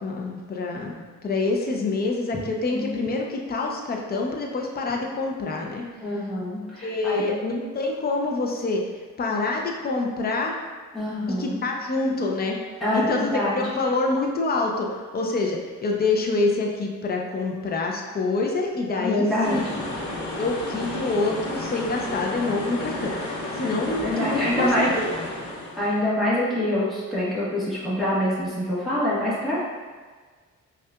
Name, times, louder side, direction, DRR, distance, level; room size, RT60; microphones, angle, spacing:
voice 1, 0.0-5.8 6.8-8.8 9.2-10.6 11.4-12.6 12.9-19.8 20.4-25.3, left 3 dB, 30° left, 0 dB, 0.6 m, -26 dB
voice 2, 6.0-7.3 10.9-11.6 12.8-13.6 19.0-19.6 24.0-24.9 25.8-29.6, left 1 dB, ahead, -10 dB, 1.2 m, -25 dB
sound 1, 19.4-26.0, left 1 dB, 70° left, 0.9 m, -32 dB
5.4 x 2.4 x 2.3 m, 1.5 s
cardioid pair, 90°, 30 cm